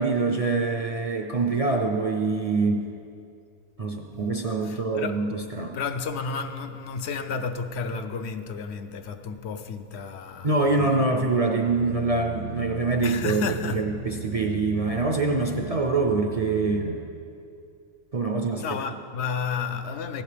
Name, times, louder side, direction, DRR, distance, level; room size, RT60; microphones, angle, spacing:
voice 1, 0.0-2.9 3.8-5.8 10.4-17.1 18.1-18.8, right 3 dB, 45° right, 0.5 m, -25 dB
voice 2, 4.7-5.2 5.7-11.0 13.0-13.9 18.6-20.2, left 5 dB, 70° left, 0.9 m, -32 dB
sound 1, 11.7-17.0, right 6 dB, 90° right, 1.0 m, -38 dB
15.0 x 11.5 x 3.3 m
omnidirectional pair, 1.2 m